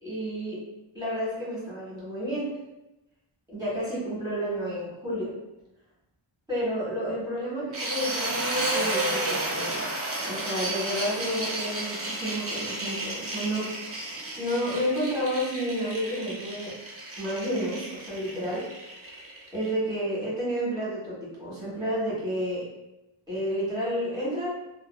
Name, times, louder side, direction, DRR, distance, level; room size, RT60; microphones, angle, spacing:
voice 1, 0.0-0.6 0.9-2.6 3.5-5.4 6.5-9.8 10.2-13.7 14.4-16.8 17.2-18.7 19.5-22.7 23.3-24.5, equal, 10° right, -10 dB, 1.3 m, -30 dB
sound 1, 7.7-19.7, right 2 dB, 30° right, 0.4 m, -32 dB
2.7 x 2.0 x 2.2 m, 0.95 s
wide cardioid pair, 135°, 49 cm